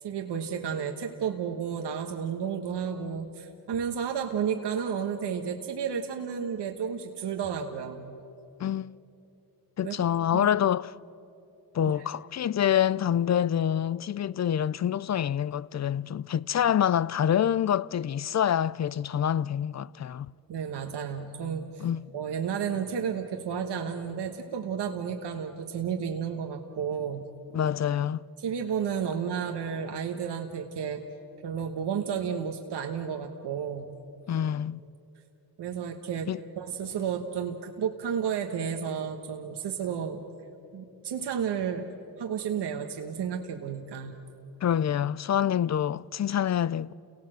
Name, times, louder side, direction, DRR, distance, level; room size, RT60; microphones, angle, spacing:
voice 1, 0.0-8.2 9.8-10.0 10.3-10.5 20.5-21.8 22.1-27.3 28.4-31.0 31.4-33.9 35.6-36.3 36.6-40.2 40.7-41.9 42.2-44.1, right 7 dB, 75° right, 1.4 m, -32 dB
voice 2, 8.6-8.9 9.8-11.0 11.7-20.3 21.8-22.0 27.5-28.2 34.3-34.8 36.3-36.4 44.6-46.9, left 9 dB, 45° left, 0.5 m, -26 dB
29.0 x 18.0 x 7.7 m
supercardioid pair, 50°, 41 cm